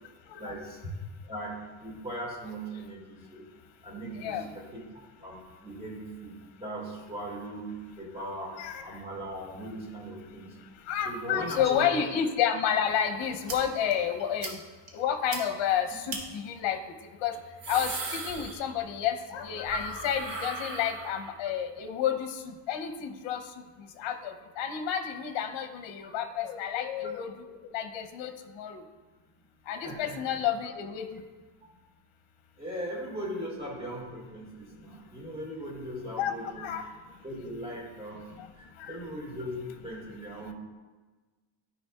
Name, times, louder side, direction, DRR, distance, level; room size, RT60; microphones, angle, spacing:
voice 1, 0.3-0.9 1.2-3.5 3.8-4.8 5.2-8.5 8.8-10.6 11.1-11.9 29.8-30.4 32.6-36.7 37.2-38.3 38.6-40.5, right 1 dB, 10° right, -4 dB, 1.9 m, -39 dB
voice 2, 4.2-4.5 8.6-9.0 10.9-14.5 14.9-16.8 17.2-17.3 17.7-22.4 22.7-23.4 24.0-28.3 28.6-28.8 29.7-31.2 36.2-36.8 38.4-38.5 38.8-39.0, left 9 dB, 65° left, 6 dB, 0.8 m, -30 dB
sound 1, 13.5-13.6 13.9-14.0 14.4-14.5 14.9-15.0 15.3-15.4 16.1-16.2 17.3-19.0 19.3-21.5, right 3 dB, 60° right, 1.3 m, -38 dB
12.5 x 5.1 x 2.3 m, 1.3 s
cardioid pair, 160°, 49 cm